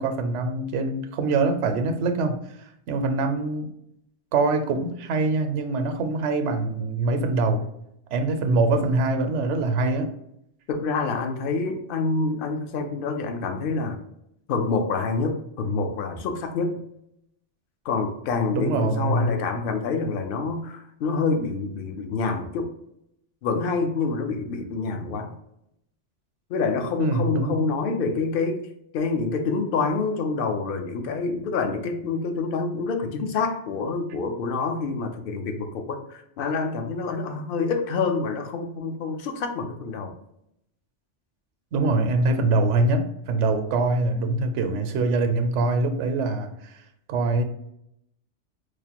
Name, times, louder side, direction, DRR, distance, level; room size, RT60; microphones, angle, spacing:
voice 1, 0.0-2.4 2.9-3.7 4.3-7.7 8.1-10.1 18.5-19.3 27.0-27.7 41.7-46.7 47.1-47.4, right 3 dB, 80° right, 7 dB, 0.9 m, -24 dB
voice 2, 10.7-14.0 14.5-16.8 17.8-22.7 23.4-25.3 26.5-28.7 28.9-40.1, left 4 dB, 60° left, 5 dB, 0.7 m, -27 dB
4.8 x 2.1 x 2.8 m, 0.77 s
omnidirectional pair, 1.2 m